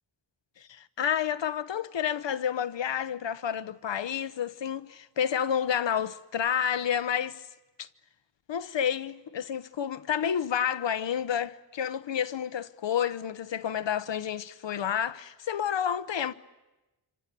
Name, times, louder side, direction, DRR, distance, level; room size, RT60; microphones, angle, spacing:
voice 1, 0.6-7.5 7.8-7.9 8.5-16.3, left 8 dB, 85° left, 1.1 m, -30 dB
27.0 x 25.5 x 8.4 m
wide cardioid pair, 70°, 43 cm